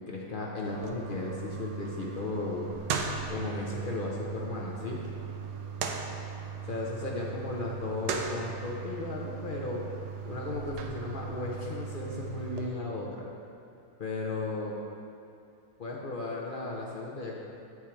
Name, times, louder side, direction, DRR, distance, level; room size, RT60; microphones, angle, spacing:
voice 1, 0.0-2.7 3.3-5.0 6.6-9.9 10.2-13.3 14.0-14.8 15.8-17.4, left 3 dB, 50° left, -2 dB, 0.6 m, -35 dB
sound 1, 0.7-12.7, right 6 dB, 90° right, 1.2 m, -38 dB
8.4 x 4.8 x 4.4 m, 2.5 s
omnidirectional pair, 1.7 m